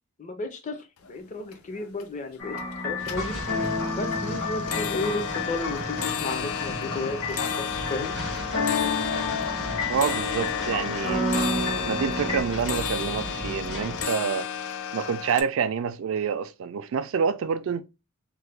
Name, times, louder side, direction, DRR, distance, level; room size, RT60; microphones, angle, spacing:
voice 1, 0.2-3.4 3.9-8.1, left 2 dB, 35° left, 0.5 m, -33 dB
sound 1, 1.0-1.1 1.4-2.0 2.4-2.8 3.0-15.4, left 7 dB, 90° left, 0.4 m, -33 dB
sound 2, 2.4-12.4, left 3 dB, 50° left, 1.1 m, -31 dB
sound 3, 3.0-14.0, equal, 65° left, 1.8 m, -37 dB
voice 2, 9.9-11.2 11.5-14.5 14.9-17.8, right 6 dB, 70° right, 0.3 m, -27 dB
3.2 x 2.1 x 3.2 m
head